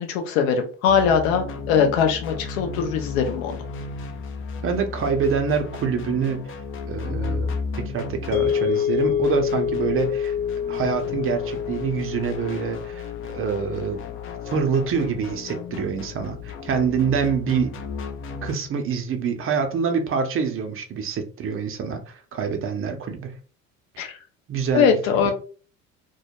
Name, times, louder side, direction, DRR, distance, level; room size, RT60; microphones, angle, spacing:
voice 1, 0.0-3.6 24.0-24.2 24.7-25.3, left 7 dB, 70° left, 0.7 m, -21 dB
sound 1, 0.9-18.5, left 4 dB, 35° left, 0.4 m, -34 dB
voice 2, 4.6-6.6 6.9-10.3 10.7-14.0 14.5-17.7 18.4-23.3 24.5-25.3, right 6 dB, 30° right, 0.6 m, -26 dB
sound 2, 8.3-16.6, left 8 dB, 50° left, 1.1 m, -28 dB
2.2 x 2.0 x 2.8 m
hypercardioid pair, 60°, 41 cm